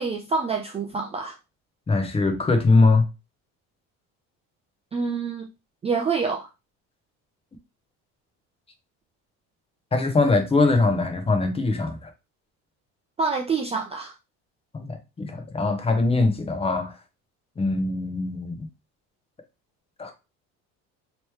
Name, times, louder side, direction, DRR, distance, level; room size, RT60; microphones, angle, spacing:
voice 1, 0.0-1.4 4.9-5.5 5.8-6.5 13.2-14.1, right 4 dB, 20° right, 0.4 m, -26 dB
voice 2, 1.9-3.1 9.9-12.1 14.7-17.0 17.6-18.7 20.0-20.1, left 3 dB, 15° left, 0.7 m, -22 dB
3.1 x 3.0 x 3.1 m
cardioid pair, 115°, 33 cm